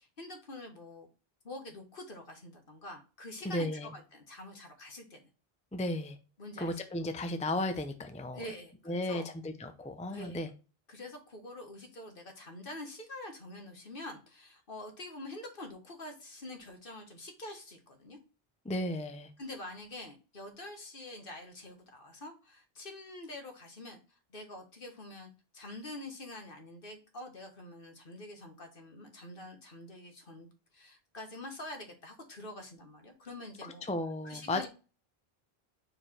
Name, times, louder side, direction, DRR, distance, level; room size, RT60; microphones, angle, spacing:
voice 1, 0.2-1.1 1.4-3.7 3.9-5.2 6.4-6.8 8.3-9.3 10.1-10.4 10.9-18.2 19.4-24.0 24.3-30.5 30.7-33.9 34.2-34.7, left 1 dB, 60° left, 4 dB, 1.6 m, -46 dB
voice 2, 3.4-3.9 5.7-6.2 6.6-8.4 8.9-10.5 18.7-19.3 33.6-34.7, left 1 dB, 10° left, 8 dB, 0.6 m, -34 dB
4.9 x 4.8 x 4.3 m, 0.33 s
omnidirectional pair, 1.0 m